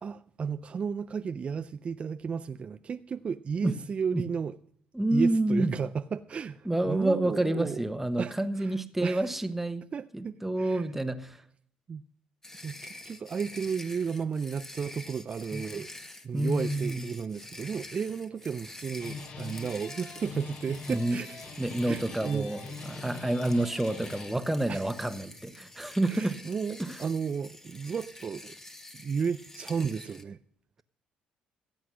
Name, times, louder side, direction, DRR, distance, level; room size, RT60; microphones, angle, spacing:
voice 1, 0.0-4.6 5.1-7.8 8.2-9.3 9.9-10.9 11.9-12.0 12.6-15.9 16.2-21.4 21.8-22.5 22.8-23.1 24.7-24.9 26.1-28.5 28.9-30.4, right 6 dB, 40° right, 0.4 m, -33 dB
voice 2, 4.9-5.7 6.6-9.8 10.1-11.4 15.5-15.6 16.3-17.0 20.9-21.2 21.6-22.6 22.9-26.4 26.8-27.0, right 1 dB, 5° right, 1.1 m, -28 dB
sound 1, 12.4-30.2, left 1 dB, 15° left, 1.3 m, -47 dB
sound 2, 18.1-18.6 18.9-24.3, left 4 dB, 65° left, 3.1 m, -43 dB
15.0 x 7.9 x 6.3 m
supercardioid pair, 80°, 3 cm